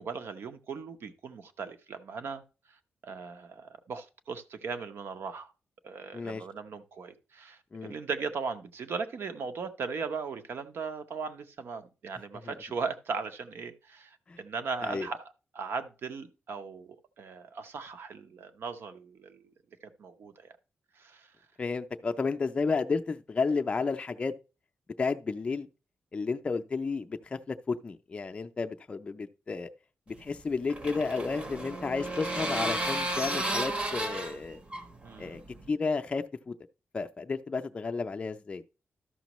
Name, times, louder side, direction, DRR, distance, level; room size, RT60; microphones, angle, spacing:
voice 1, 0.0-2.4 2.7-2.8 3.0-5.5 5.8-19.5 20.0-20.5 21.0-21.3 35.0-35.4, right 5 dB, 60° right, 0.8 m, -38 dB
voice 2, 6.1-6.4 7.7-7.9 12.4-12.6 14.3-14.4 14.8-15.1 21.6-24.3 25.0-25.7 26.1-29.7 30.1-34.6 35.2-35.4 35.7-36.5 36.9-38.6, left 4 dB, 25° left, 0.4 m, -32 dB
sound 1, 30.1-35.7, right 1 dB, 30° right, 0.8 m, -33 dB
12.5 x 6.0 x 3.0 m
wide cardioid pair, 180°, 4 cm